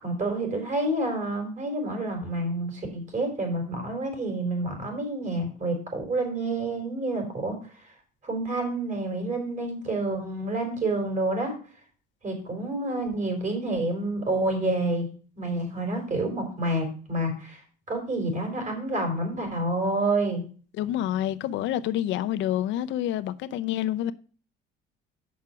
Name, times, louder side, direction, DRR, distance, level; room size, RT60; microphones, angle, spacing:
voice 1, 0.0-7.5 8.2-11.5 12.2-15.1 15.4-17.6 17.9-20.4, right 2 dB, 35° right, 4.3 m, -28 dB
voice 2, 20.8-24.1, left 12 dB, 65° left, 0.6 m, -28 dB
7.4 x 6.1 x 5.7 m
cardioid pair, 135°, 21 cm